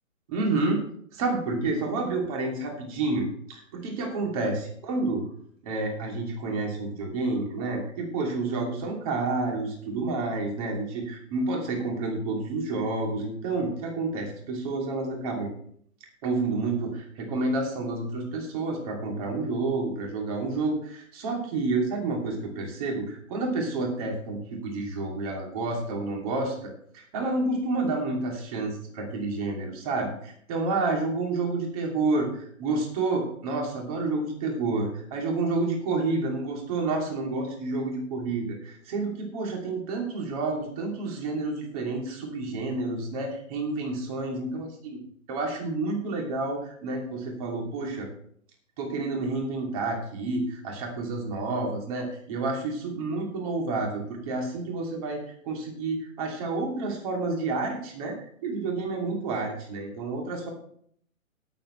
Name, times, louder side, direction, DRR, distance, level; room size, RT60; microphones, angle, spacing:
voice 1, 0.3-0.8 1.1-5.2 5.6-15.5 16.2-45.0 45.3-48.1 48.8-58.1 58.4-60.5, right 3 dB, 25° right, 0 dB, 2.9 m, -29 dB
19.0 x 7.5 x 3.3 m, 0.62 s
hypercardioid pair, 160°, 41 cm